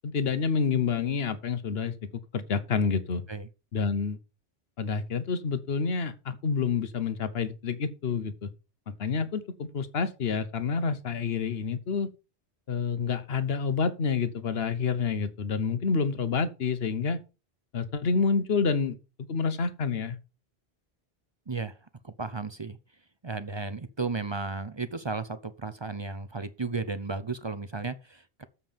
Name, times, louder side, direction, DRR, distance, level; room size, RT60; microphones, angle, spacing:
voice 1, 0.0-2.0 2.3-3.2 3.7-4.2 4.8-8.5 8.9-12.1 12.7-17.2 17.7-19.0 19.3-20.2, left 5 dB, 65° left, 1.3 m, -28 dB
voice 2, 22.0-22.8 23.2-28.4, right 4 dB, 30° right, 0.6 m, -34 dB
7.5 x 5.5 x 6.9 m
omnidirectional pair, 1.1 m